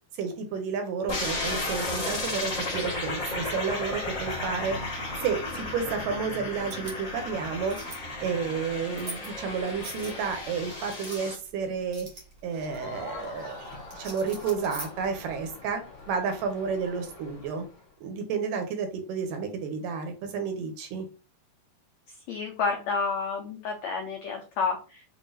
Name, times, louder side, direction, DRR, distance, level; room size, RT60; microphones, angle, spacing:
voice 1, 0.2-4.8 5.2-7.8 8.2-12.1 12.4-13.6 13.9-15.8 16.1-17.7 18.0-21.1, right 5 dB, 75° right, 6 dB, 2.2 m, -31 dB
sound 1, 1.1-11.3, left 2 dB, 30° left, 1.4 m, -34 dB
sound 2, 6.5-15.5, right 2 dB, 40° right, 1.1 m, -46 dB
Crowd, 12.6-17.9, left 2 dB, 60° left, 3.2 m, -44 dB
voice 2, 22.3-25.0, left 5 dB, 85° left, 2 dB, 1.5 m, -30 dB
7.4 x 2.6 x 2.7 m, 0.35 s
omnidirectional pair, 4.1 m